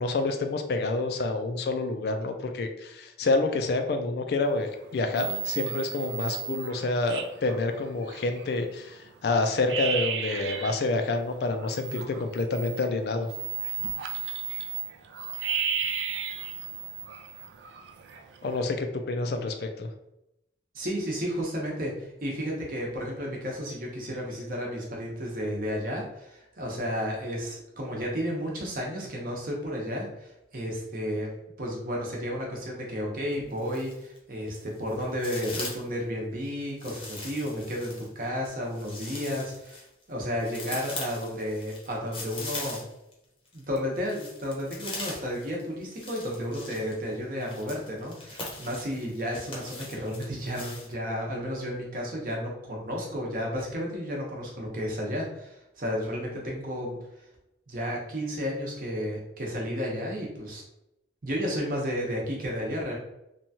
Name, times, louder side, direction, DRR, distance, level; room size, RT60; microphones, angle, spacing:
voice 1, 0.0-13.3 18.4-19.9, left 3 dB, 60° left, 6 dB, 0.3 m, -28 dB
sound 1, 4.4-4.8 5.1-8.6 9.1-9.2 9.4-10.8 11.2-18.6, right 7 dB, 75° right, 0.3 m, -34 dB
voice 2, 20.7-31.3 31.6-42.8 43.5-57.0 57.7-60.6 61.2-63.0, equal, 50° right, -1 dB, 0.8 m, -32 dB
sound 2, 33.3-34.2 34.5-35.9 36.8-43.1 43.4-50.9, left 2 dB, 30° left, 0.7 m, -41 dB
2.9 x 2.2 x 2.7 m, 0.87 s
head